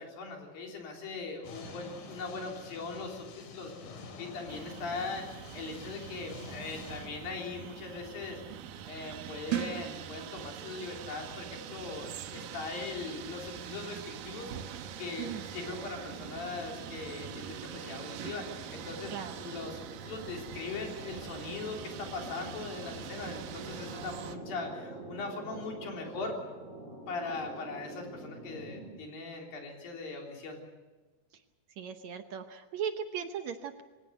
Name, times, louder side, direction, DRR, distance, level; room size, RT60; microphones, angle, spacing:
voice 1, 0.0-3.7 4.2-5.2 5.5-8.4 8.9-14.5 15.0-18.5 18.7-26.3 27.1-30.6, left 4 dB, 85° left, 1 dB, 5.3 m, -40 dB
sound 1, 1.4-7.1, left 3 dB, 70° left, 4.0 m, -47 dB
sound 2, 4.5-24.4, right 10 dB, 85° right, 2.8 m, -43 dB
sound 3, 14.2-29.0, right 2 dB, 20° right, 5.3 m, -47 dB
voice 2, 31.8-33.8, right 8 dB, 65° right, 7 dB, 2.0 m, -38 dB
24.5 x 17.0 x 8.0 m, 1.2 s
omnidirectional pair, 4.0 m